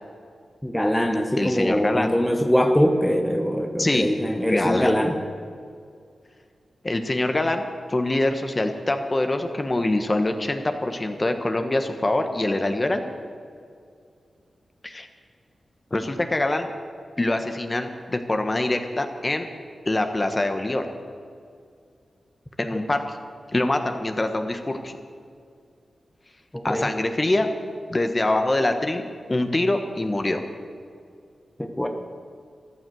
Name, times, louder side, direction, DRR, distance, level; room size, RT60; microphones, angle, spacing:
voice 1, 0.6-5.2 26.5-26.9 31.6-31.9, equal, 10° left, 4 dB, 1.1 m, -22 dB
voice 2, 1.4-2.1 3.8-4.1 4.5-4.9 6.8-13.0 14.8-15.1 15.9-16.7 17.2-19.5 19.8-20.9 22.6-23.2 23.5-25.0 26.6-27.5 27.9-29.0 29.3-30.4, left 2 dB, 30° left, 6 dB, 1.2 m, -24 dB
14.0 x 11.5 x 7.8 m, 2.2 s
wide cardioid pair, 80°, 0 cm